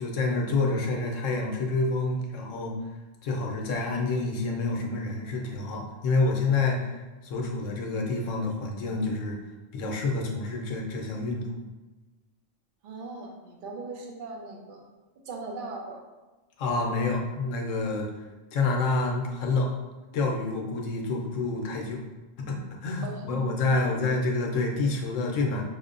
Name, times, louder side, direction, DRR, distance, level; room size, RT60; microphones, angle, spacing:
voice 1, 0.0-2.8 3.2-9.4 9.7-11.5 16.6-18.1 18.5-19.7 20.1-22.0 22.4-25.6, left 3 dB, 80° left, 0 dB, 1.0 m, -28 dB
voice 2, 12.8-14.8 15.3-16.0 23.0-23.4 23.7-23.9, right 3 dB, 55° right, 1 dB, 0.7 m, -39 dB
5.7 x 2.1 x 2.5 m, 1.1 s
omnidirectional pair, 1.3 m